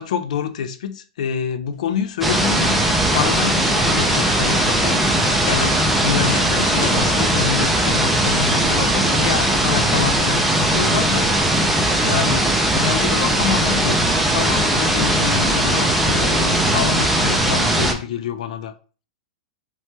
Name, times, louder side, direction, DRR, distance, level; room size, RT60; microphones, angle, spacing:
voice 1, 0.0-2.8 3.1-5.0 5.2-11.3 12.0-14.0 14.3-18.7, left 8 dB, 70° left, 0.4 m, -26 dB
sound 1, 2.0-2.1 2.3-2.9 3.5-3.6 3.8-6.5 6.8-7.2 8.0-8.3, left 2 dB, 50° left, 1.4 m, -33 dB
sound 2, 2.2-17.9, right 1 dB, 5° right, 0.3 m, -19 dB
3.1 x 2.2 x 2.7 m
supercardioid pair, 155°, 4 cm